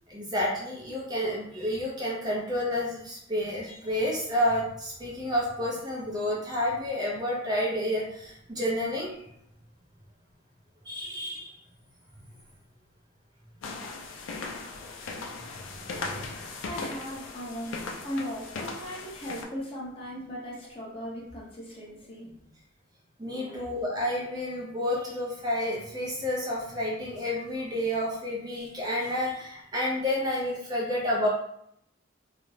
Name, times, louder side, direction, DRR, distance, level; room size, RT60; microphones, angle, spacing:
voice 1, 0.1-9.2 10.8-11.6 15.5-16.3 23.2-31.3, left 1 dB, 20° right, -4 dB, 0.4 m, -30 dB
sound 1, 13.6-19.4, left 3 dB, 70° left, 0.4 m, -38 dB
voice 2, 16.6-22.4 23.5-23.7, equal, 30° left, -5 dB, 0.7 m, -38 dB
2.3 x 2.0 x 3.1 m, 0.73 s
head